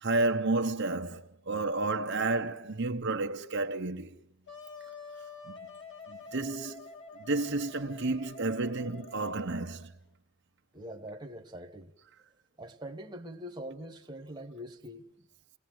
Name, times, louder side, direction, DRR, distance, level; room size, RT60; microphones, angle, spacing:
voice 1, 0.0-4.1 5.5-5.6 6.1-6.9 7.2-9.9, right 2 dB, 50° right, 0.9 m, -31 dB
Wind instrument woodwind instrument, 4.5-10.0, left 3 dB, 55° left, 2.6 m, -48 dB
voice 2, 10.7-11.9 12.6-15.1, equal, 20° right, 1.3 m, -43 dB
29.0 x 19.0 x 7.8 m
head